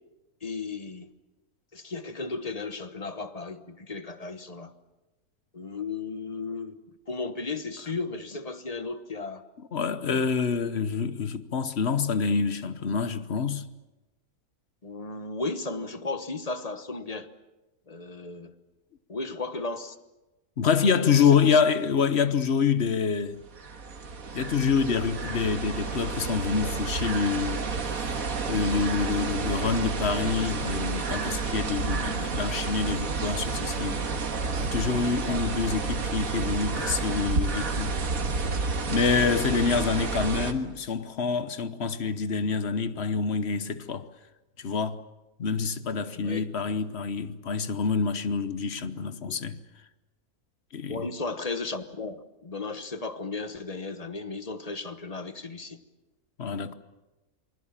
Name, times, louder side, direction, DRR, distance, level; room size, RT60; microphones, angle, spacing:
voice 1, 0.4-1.1 1.7-4.7 5.5-6.8 7.1-9.4 10.1-10.3 14.8-17.3 17.9-18.5 19.1-20.0 21.1-21.6 35.3-35.4 39.2-39.4 46.2-46.5 50.9-55.8, left 3 dB, 25° left, 1.1 m, -35 dB
voice 2, 9.7-13.7 20.6-23.4 24.3-27.7 27.9-34.0 34.6-38.0 38.9-44.1 44.6-45.0 45.4-49.6 50.7-51.1 56.4-56.7, left 6 dB, 50° left, 1.2 m, -26 dB
sound 1, 23.4-40.5, right 4 dB, 65° right, 2.1 m, -30 dB
28.0 x 21.0 x 7.4 m
omnidirectional pair, 1.6 m